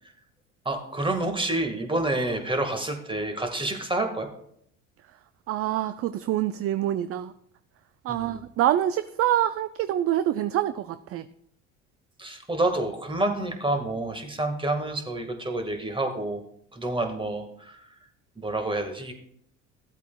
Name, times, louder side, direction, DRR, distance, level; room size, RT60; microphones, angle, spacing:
voice 1, 0.7-4.3 8.1-8.4 12.2-16.4 16.7-17.8 18.4-19.1, right 2 dB, 15° right, 5 dB, 1.7 m, -28 dB
voice 2, 5.5-7.3 8.0-11.3, right 12 dB, 40° right, 12 dB, 0.4 m, -26 dB
14.5 x 8.1 x 2.3 m, 0.70 s
hypercardioid pair, 70°, 38 cm